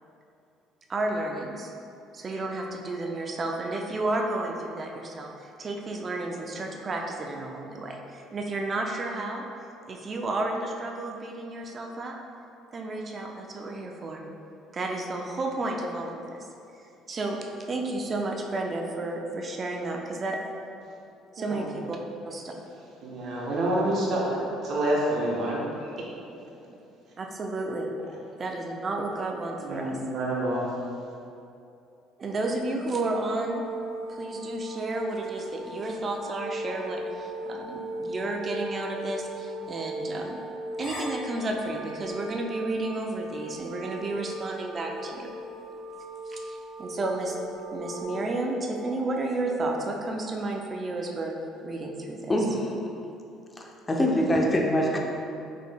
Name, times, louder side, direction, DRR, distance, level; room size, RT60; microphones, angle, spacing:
voice 1, 0.9-1.7 2.1-9.5 9.9-12.1 12.7-14.2 14.7-16.2 17.1-17.4 17.7-20.4 21.3-22.0 22.2-22.5 27.2-27.9 28.4-30.0 32.2-33.6 34.1-40.4 40.8-45.3 46.3-47.4 47.7-51.3 51.6-52.3, right 2 dB, 40° right, 1 dB, 0.4 m, -32 dB
voice 2, 23.0-24.3 24.6-26.0 29.6-30.7, right 1 dB, 60° right, -4 dB, 0.9 m, -28 dB
sound 1, 33.5-48.0, equal, 50° left, 1.1 m, -38 dB
voice 3, 52.3-52.7 53.6-55.0, equal, 25° left, 0 dB, 0.6 m, -24 dB
5.0 x 3.1 x 2.2 m, 2.7 s
supercardioid pair, 70°, 0 cm